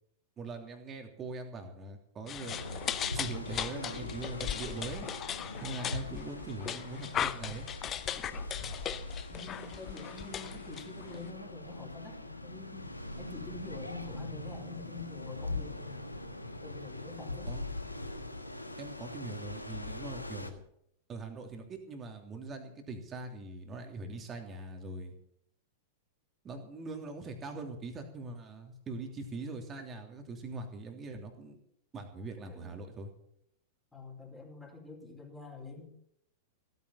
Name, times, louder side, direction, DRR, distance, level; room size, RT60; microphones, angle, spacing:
voice 1, 0.4-2.6 3.1-5.1 5.6-7.7 17.4-17.7 18.8-20.6 21.1-25.1 26.4-31.6 31.9-33.1, right 3 dB, 25° right, 4 dB, 3.1 m, -42 dB
sound 1, 2.3-11.3, left 9 dB, 25° left, 0.7 m, -38 dB
sound 2, 2.4-20.5, left 2 dB, 85° left, 1.5 m, -42 dB
voice 2, 9.3-16.1 16.6-17.5 32.5-32.8 33.9-35.9, left 3 dB, 10° left, -1 dB, 4.8 m, -46 dB
16.5 x 9.5 x 7.2 m, 0.73 s
figure-of-eight pair, 95°, 0 cm